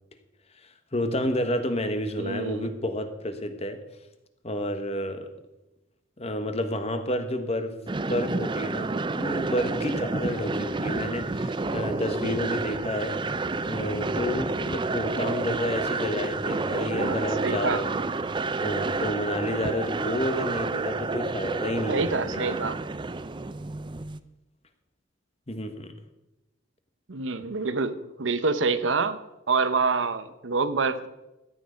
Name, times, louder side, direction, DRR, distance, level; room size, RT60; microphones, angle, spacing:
voice 1, 0.9-3.8 4.4-5.3 6.2-8.9 9.2-13.2 13.7-18.0 18.6-22.6 25.5-25.9, left 1 dB, 30° left, 8 dB, 1.3 m, -30 dB
voice 2, 2.2-2.7 17.0-17.8 21.9-22.8 27.1-29.2 29.5-31.1, right 4 dB, 75° right, 12 dB, 0.8 m, -27 dB
sound 1, 7.9-24.2, right 3 dB, 25° right, 0.5 m, -30 dB
14.0 x 9.4 x 5.1 m, 0.97 s
head